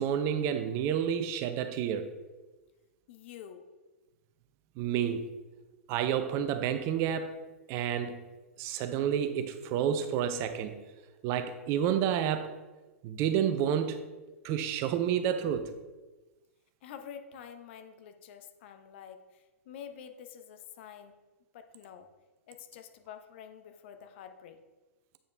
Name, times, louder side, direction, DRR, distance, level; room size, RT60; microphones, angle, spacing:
voice 1, 0.0-2.1 4.8-5.3 5.9-7.4 7.7-8.2 8.6-10.7 11.2-12.6 13.0-14.1 14.4-15.7, right 9 dB, 40° right, 0.7 m, -30 dB
voice 2, 3.1-3.7 16.8-21.2 21.5-22.1 22.5-24.6, left 8 dB, 50° left, 0.8 m, -48 dB
8.6 x 5.2 x 3.4 m
figure-of-eight pair, 105°, 8 cm